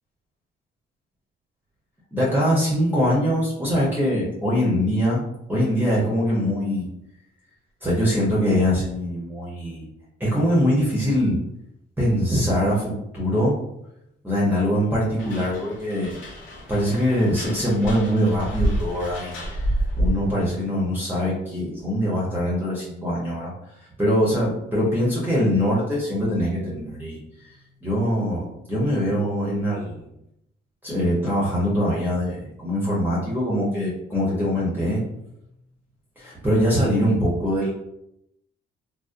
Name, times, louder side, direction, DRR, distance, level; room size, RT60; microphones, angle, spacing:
voice 1, 2.1-5.2 5.5-6.9 7.8-9.8 10.2-11.4 12.0-13.6 14.2-16.2 16.7-30.1 30.8-35.0 36.2-37.7, equal, 10° right, -6 dB, 0.7 m, -23 dB
sound 1, 15.2-20.4, right 1 dB, 75° left, 0.7 m, -28 dB
2.5 x 2.0 x 2.4 m, 0.82 s
cardioid pair, 90°, 20 cm